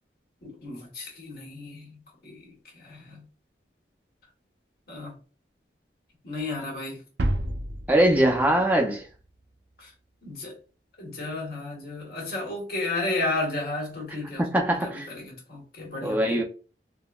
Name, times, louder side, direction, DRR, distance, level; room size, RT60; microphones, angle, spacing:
voice 1, 0.4-1.9 2.2-3.2 4.9-5.1 6.2-7.0 9.8-9.9 10.2-10.5 11.0-16.4, left 2 dB, 60° left, 1.3 m, -33 dB
sound 1, 7.2-9.3, right 1 dB, 75° right, 0.4 m, -30 dB
voice 2, 7.9-9.0 14.4-15.1 16.0-16.4, right 1 dB, 10° right, 0.4 m, -22 dB
3.7 x 2.1 x 2.3 m
head